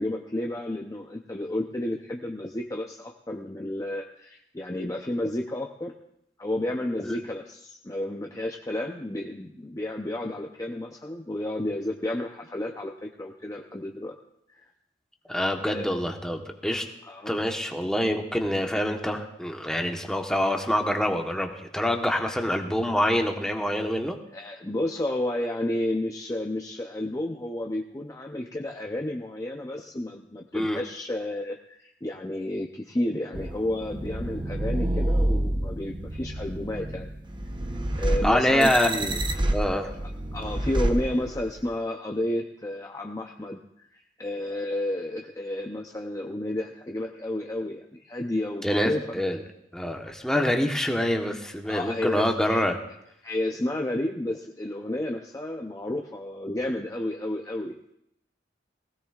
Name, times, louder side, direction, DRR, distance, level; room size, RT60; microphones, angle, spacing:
voice 1, 0.0-5.9 6.4-14.1 14.5-14.6 15.7-15.9 17.0-17.3 22.2-22.3 24.3-37.1 38.0-38.9 40.3-49.2 51.6-52.6 53.2-57.8, left 1 dB, 20° left, 2 dB, 0.6 m, -31 dB
voice 2, 15.3-16.8 17.3-24.2 30.5-30.8 38.2-39.2 39.5-39.9 48.6-49.4 49.7-52.8, equal, 5° left, 2 dB, 1.1 m, -26 dB
sound 1, 33.3-41.7, right 1 dB, 25° right, 0.8 m, -29 dB
19.5 x 16.5 x 2.4 m, 0.78 s
head